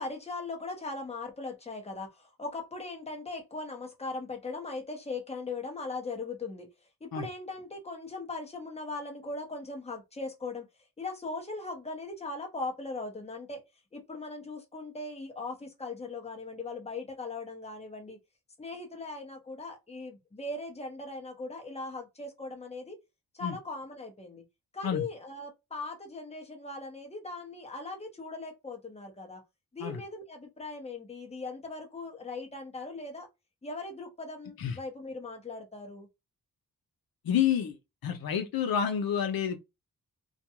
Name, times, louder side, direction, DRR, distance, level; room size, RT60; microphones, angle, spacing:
voice 1, 0.0-6.7 7.0-10.7 11.0-13.6 13.9-18.2 18.6-23.0 23.3-24.4 24.7-29.4 29.7-33.3 33.6-36.1, left 3 dB, 15° left, 0.9 m, -39 dB
voice 2, 37.2-37.8 38.0-39.6, left 8 dB, 75° left, 0.6 m, -28 dB
2.5 x 2.2 x 2.9 m
wide cardioid pair, 110°, 36 cm